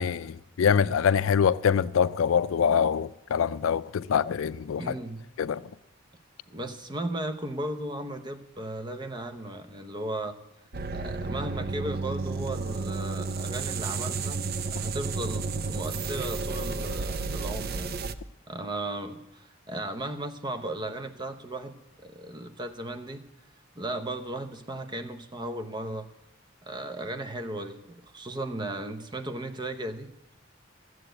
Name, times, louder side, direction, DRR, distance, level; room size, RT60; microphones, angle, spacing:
voice 1, 0.0-4.9 5.4-5.6, left 7 dB, 90° left, 0.4 m, -24 dB
voice 2, 4.8-5.2 6.5-10.4 10.9-14.4 14.7-18.0 18.5-23.2 23.7-26.1 26.6-30.1, right 1 dB, 20° right, 0.8 m, -36 dB
sound 1, 10.7-18.2, right 4 dB, 50° right, 0.5 m, -32 dB
13.0 x 7.7 x 7.9 m
head